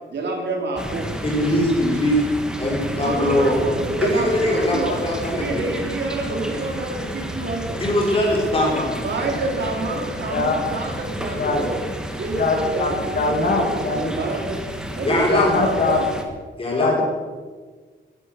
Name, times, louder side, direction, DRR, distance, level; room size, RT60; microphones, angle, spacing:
voice 1, 0.1-1.1 2.9-5.0 5.3-7.8 9.0-11.8 12.2-14.6 15.0-16.1, right 2 dB, 65° right, 1 dB, 3.7 m, -27 dB
sound 1, 0.8-16.2, equal, 5° right, 1.5 m, -32 dB
voice 2, 1.2-2.2 2.6-3.6 3.9-5.6 7.8-8.9 11.3-11.5 15.0-15.6 16.6-16.9, left 1 dB, 30° left, -3 dB, 5.0 m, -21 dB
voice 3, 12.3-14.1 15.3-16.0 16.8-17.0, left 3 dB, 50° left, 2 dB, 2.3 m, -22 dB
15.5 x 11.5 x 6.8 m, 1.5 s
wide cardioid pair, 180°, 19 cm